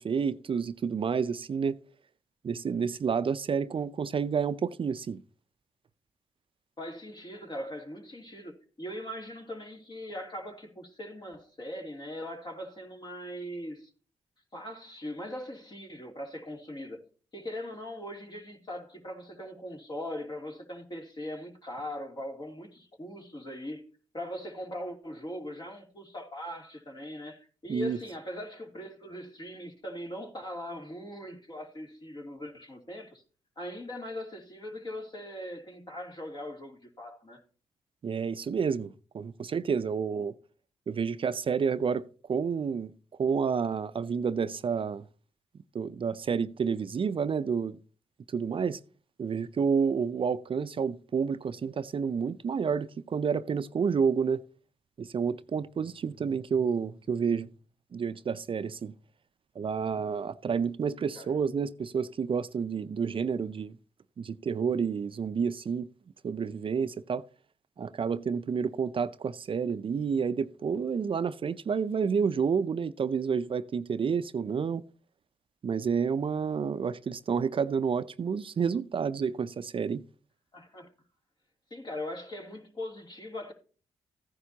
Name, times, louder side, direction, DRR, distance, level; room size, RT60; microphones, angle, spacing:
voice 1, 0.0-1.8 2.4-5.2 27.7-28.0 38.0-40.3 40.9-42.9 43.2-45.0 45.7-47.8 48.3-48.8 49.2-54.4 55.0-57.5 57.9-58.9 59.6-63.8 64.2-65.9 66.2-67.2 67.8-74.8 75.6-80.0, right 6 dB, 50° right, 0.5 m, -29 dB
voice 2, 6.8-13.9 14.5-17.0 17.3-23.9 24.1-33.2 33.6-37.4 61.1-61.3 80.5-80.9 81.7-83.5, left 1 dB, 40° left, 2.9 m, -40 dB
14.5 x 9.9 x 2.8 m
supercardioid pair, 45°, 11 cm